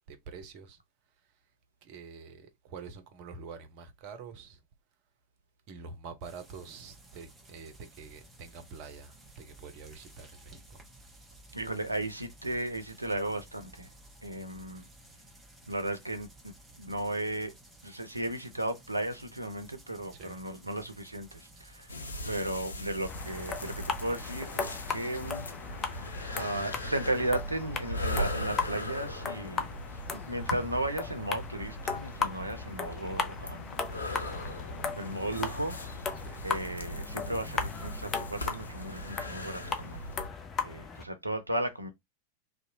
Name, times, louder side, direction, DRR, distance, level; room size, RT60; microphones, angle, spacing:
voice 1, 0.1-0.8 1.2-1.4 1.8-4.6 5.7-10.8 12.5-12.6 20.1-20.4 27.5-27.7 36.1-36.4, right 5 dB, 45° right, 0.6 m, -47 dB
sound 1, 6.2-24.8, right 1 dB, 10° right, 0.9 m, -55 dB
voice 2, 11.5-13.9 14.2-14.9 15.7-17.5 17.8-21.9 22.2-25.5 26.4-33.8 35.0-35.8 36.4-40.1 40.6-41.9, right 1 dB, 85° right, 0.5 m, -35 dB
sound 2, 21.9-40.3, left 1 dB, 75° left, 0.5 m, -39 dB
sound 3, 23.1-41.1, left 5 dB, 25° left, 0.5 m, -37 dB
2.7 x 2.1 x 2.6 m
figure-of-eight pair, 90°, 0 cm